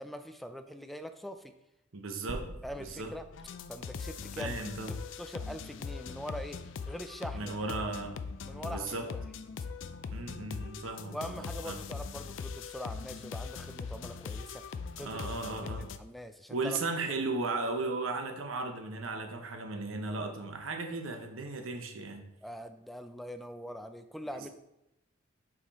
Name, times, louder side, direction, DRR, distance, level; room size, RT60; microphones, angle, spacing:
voice 1, 0.0-1.5 2.6-3.3 3.7-4.6 4.9-7.6 8.4-9.2 11.1-14.6 15.0-15.3 15.8-16.8 22.4-24.5, equal, ahead, 8 dB, 0.3 m, -43 dB
voice 2, 1.9-2.4 2.8-3.1 4.4-4.9 7.3-8.2 8.6-9.1 10.1-11.8 15.0-15.9 16.5-22.2 24.3-24.5, right 3 dB, 85° right, 5 dB, 0.9 m, -36 dB
sound 1, 2.3-6.5, right 1 dB, 55° right, 0.7 m, -49 dB
sound 2, 3.3-16.0, left 5 dB, 65° left, 0.4 m, -41 dB
5.7 x 4.9 x 4.1 m, 0.86 s
head